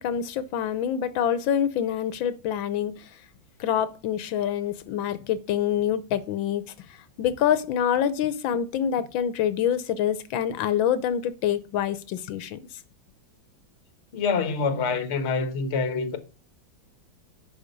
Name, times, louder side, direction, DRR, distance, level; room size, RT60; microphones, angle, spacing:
voice 1, 0.0-2.9 3.6-6.6 7.2-12.6, left 9 dB, 90° left, 1.6 m, -26 dB
voice 2, 14.1-16.2, left 4 dB, 40° left, 1.2 m, -26 dB
10.5 x 4.6 x 5.2 m
omnidirectional pair, 2.1 m